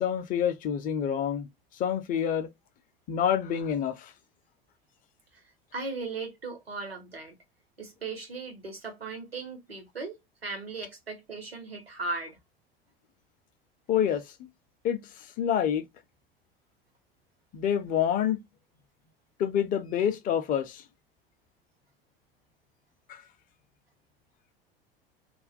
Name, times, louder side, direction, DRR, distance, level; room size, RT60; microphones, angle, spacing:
voice 1, 0.0-1.5 1.8-2.5 3.1-4.1 13.9-14.5 14.8-15.9 17.5-18.4 19.4-20.8 23.1-23.2, left 9 dB, 30° left, 0.5 m, -27 dB
voice 2, 5.3-7.4 7.8-12.4, right 3 dB, 90° right, 0.9 m, -38 dB
2.3 x 2.1 x 2.4 m
figure-of-eight pair, 75°, 29 cm